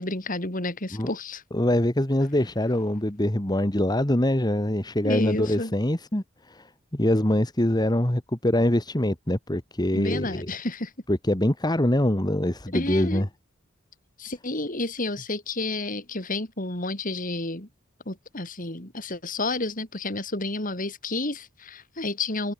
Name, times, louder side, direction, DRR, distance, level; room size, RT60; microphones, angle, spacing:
voice 1, 0.0-1.4 5.0-5.7 9.9-10.9 12.7-13.2 14.2-17.7 18.1-22.5, left 2 dB, 40° left, 4.5 m, -30 dB
voice 2, 1.5-10.5 11.1-13.3, left 1 dB, 20° left, 1.8 m, -24 dB
head